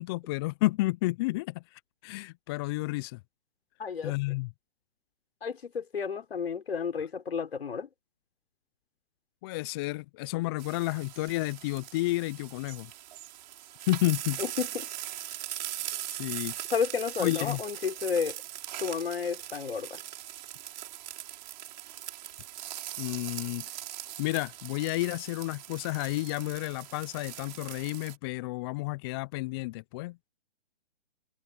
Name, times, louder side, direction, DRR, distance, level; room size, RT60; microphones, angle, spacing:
voice 1, 0.0-3.2 4.0-4.5 9.4-12.9 13.9-14.4 16.1-16.5 17.2-17.6 23.0-23.6 24.2-30.2, left 20 dB, 25° left, 0.7 m, -31 dB
voice 2, 3.8-4.1 5.4-7.9 14.4-14.9 16.7-18.4 18.8-20.0, left 6 dB, 70° left, 6.3 m, -31 dB
sound 1, 10.6-28.2, right 13 dB, 45° right, 6.5 m, -41 dB
figure-of-eight pair, 135°, 32 cm